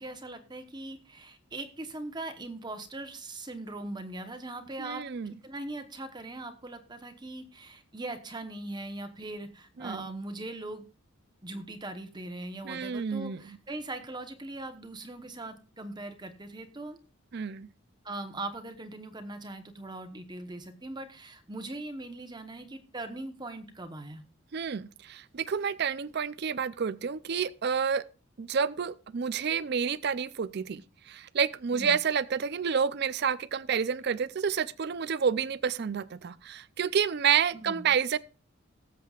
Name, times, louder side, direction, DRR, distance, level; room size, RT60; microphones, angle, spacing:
voice 1, 0.0-10.9 11.4-17.0 18.0-24.2 31.7-32.0 37.5-37.9, right 2 dB, 20° right, 1.0 m, -40 dB
voice 2, 4.8-5.3 9.8-10.0 12.6-13.6 17.3-17.7 24.5-28.0 28.4-38.2, right 7 dB, 50° right, 0.4 m, -29 dB
19.5 x 7.6 x 2.4 m
head